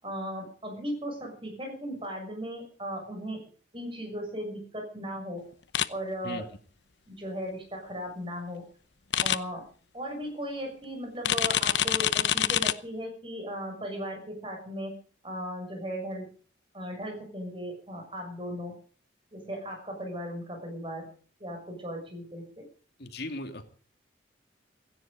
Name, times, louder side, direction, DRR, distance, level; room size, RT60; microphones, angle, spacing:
voice 1, 0.0-3.4 3.7-5.5 5.9-6.5 7.1-8.7 9.2-9.6 9.9-16.3 16.7-18.8 19.3-21.1 21.4-22.7, equal, 30° right, 4 dB, 6.6 m, -37 dB
sound 1, 5.7-5.9 9.1-9.4 11.2-12.7, left 10 dB, 75° left, 0.8 m, -25 dB
voice 2, 23.0-23.6, left 2 dB, 60° left, 5 dB, 2.8 m, -37 dB
17.0 x 15.5 x 5.2 m, 0.43 s
head